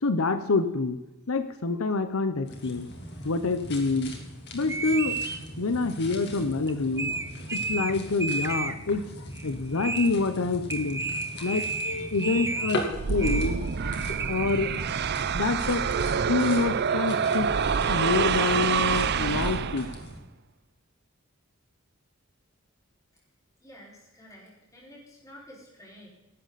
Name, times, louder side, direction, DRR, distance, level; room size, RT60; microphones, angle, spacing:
voice 1, 0.0-1.0 1.3-2.9 3.2-4.1 4.5-5.2 5.6-7.2 7.5-11.0 11.4-12.8 13.1-13.9 14.2-14.9 15.3-17.5 17.8-19.9, left 3 dB, 75° left, 10 dB, 0.8 m, -27 dB
sound 1, 2.5-20.2, left 1 dB, 55° left, 2.8 m, -40 dB
sound 2, 4.7-5.4 6.7-6.8 7.0-7.9 8.2-8.7 9.3-9.5 9.7-10.1 10.7-12.8 13.2-13.7 14.2-14.3, right 3 dB, 15° right, 0.7 m, -32 dB
sound 3, 12.9-20.1, right 6 dB, 50° right, 0.5 m, -27 dB
voice 2, 23.6-26.1, equal, 15° left, -4 dB, 5.0 m, -50 dB
15.5 x 12.0 x 4.1 m, 1.0 s
head